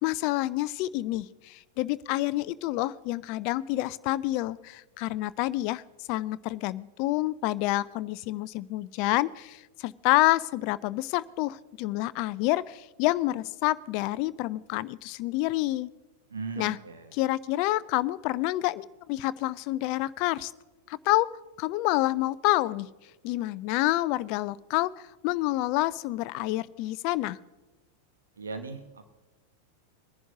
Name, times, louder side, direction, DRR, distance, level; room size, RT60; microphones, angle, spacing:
voice 1, 0.0-5.8 6.1-15.9 16.6-16.8 17.2-20.5 20.9-21.3 21.6-22.9 23.2-24.9 25.2-27.4, left 17 dB, 45° left, 18 dB, 0.4 m, -28 dB
voice 2, 16.3-17.2 28.4-29.1, right 4 dB, 70° right, 6 dB, 1.1 m, -38 dB
21.5 x 11.0 x 2.7 m, 1.1 s
figure-of-eight pair, 90°, 0 cm